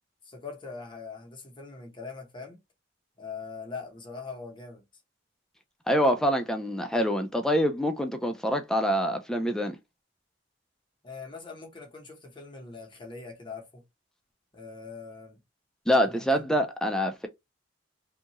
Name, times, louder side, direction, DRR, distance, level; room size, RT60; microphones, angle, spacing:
voice 1, 0.2-2.6 3.2-4.8 11.0-13.8 14.5-15.4 16.0-16.4, left 4 dB, 25° left, 0.8 m, -42 dB
voice 2, 5.9-9.8 15.9-17.3, equal, 5° left, 0.3 m, -25 dB
2.7 x 2.3 x 2.9 m
head